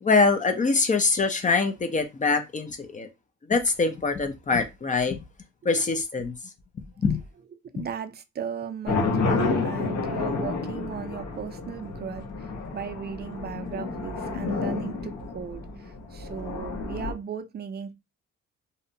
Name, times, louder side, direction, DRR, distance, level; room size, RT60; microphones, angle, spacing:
voice 1, 0.0-3.1 3.5-5.2 5.6-6.4 7.0-7.2, left 4 dB, 25° left, 0.4 m, -24 dB
voice 2, 7.6-17.9, right 7 dB, 35° right, 0.4 m, -37 dB
sound 1, 8.9-17.1, left 4 dB, 65° left, 0.9 m, -30 dB
2.7 x 2.1 x 2.6 m
cardioid pair, 90°, 30 cm